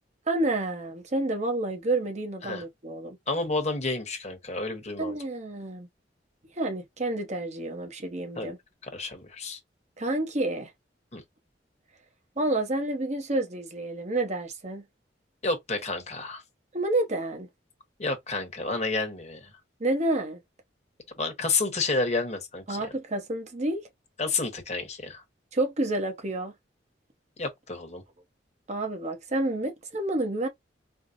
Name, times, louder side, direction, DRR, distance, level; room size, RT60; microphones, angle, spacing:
voice 1, 0.3-3.2 5.0-5.9 6.6-8.6 10.0-10.7 12.4-14.8 16.7-17.5 19.8-20.4 22.7-23.9 25.5-26.5 28.7-30.5, right 2 dB, 40° right, 0.9 m, -29 dB
voice 2, 3.3-5.1 8.4-8.5 8.9-9.6 11.1-11.2 15.4-16.4 18.0-19.5 21.2-22.9 24.2-25.2 27.4-28.0, left 3 dB, 40° left, 1.0 m, -30 dB
4.5 x 2.1 x 2.5 m
head